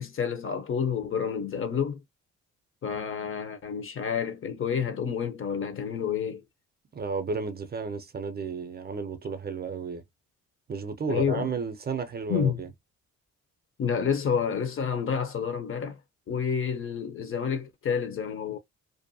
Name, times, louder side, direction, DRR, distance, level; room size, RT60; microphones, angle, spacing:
voice 1, 0.0-2.0 2.8-6.4 11.1-11.5 12.3-12.6 13.8-16.0 16.3-18.6, left 7 dB, 45° left, 0.7 m, -29 dB
voice 2, 6.9-10.0 10.7-12.7, right 5 dB, 35° right, 0.5 m, -33 dB
2.6 x 2.1 x 2.6 m
cardioid pair, 90°, 30 cm